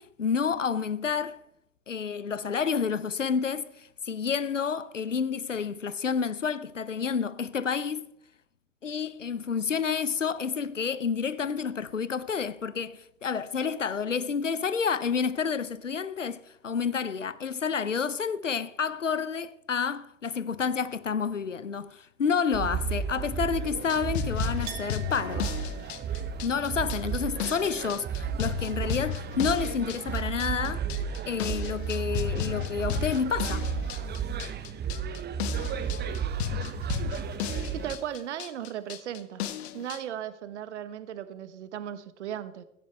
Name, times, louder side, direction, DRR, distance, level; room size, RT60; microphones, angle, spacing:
voice 1, 0.0-1.4 1.9-8.1 8.8-25.5 26.4-30.9 31.3-33.7, left 6 dB, 85° left, 0.7 m, -29 dB
sound 1, 22.5-38.0, right 6 dB, 30° right, 1.0 m, -33 dB
sound 2, 23.8-40.0, left 11 dB, 60° left, 1.2 m, -35 dB
Chink clink, 24.7-30.2 30.5-31.3, right 10 dB, 55° right, 2.1 m, -49 dB
voice 2, 37.7-39.4 39.7-42.6, right 10 dB, 70° right, 1.2 m, -36 dB
16.5 x 14.0 x 3.3 m
figure-of-eight pair, 75°, 36 cm